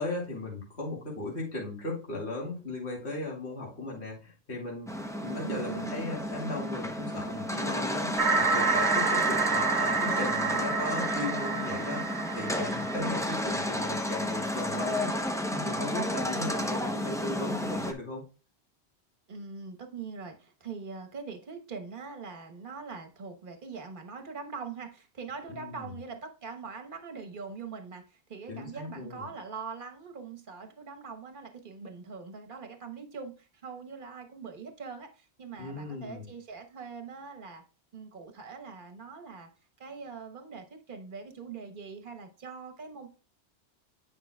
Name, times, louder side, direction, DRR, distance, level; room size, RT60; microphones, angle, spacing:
voice 1, 0.0-4.9 5.2-18.2 25.5-25.9 28.5-29.3 35.6-36.3, left 2 dB, 70° left, -2 dB, 2.5 m, -37 dB
sound 1, 4.9-17.9, left 1 dB, 5° left, 0.5 m, -32 dB
voice 2, 5.4-6.2 13.0-13.2 19.3-37.6 37.9-39.5 39.8-43.1, right 5 dB, 50° right, 5 dB, 1.2 m, -42 dB
sound 2, 8.2-13.9, right 4 dB, 70° right, 1.1 m, -29 dB
9.6 x 5.5 x 2.3 m, 0.34 s
omnidirectional pair, 1.2 m